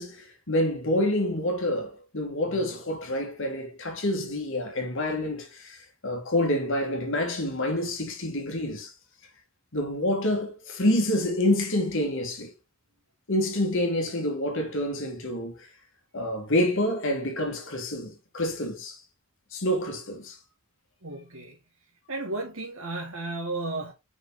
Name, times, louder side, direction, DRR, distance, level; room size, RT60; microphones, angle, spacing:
voice 1, 0.0-8.9 9.7-12.5 13.3-15.7 16.1-19.0 19.5-20.4, left 1 dB, 60° left, 2.0 m, -27 dB
voice 2, 21.0-21.6 22.1-23.9, right 2 dB, 65° right, 1.8 m, -33 dB
5.9 x 4.9 x 3.7 m
head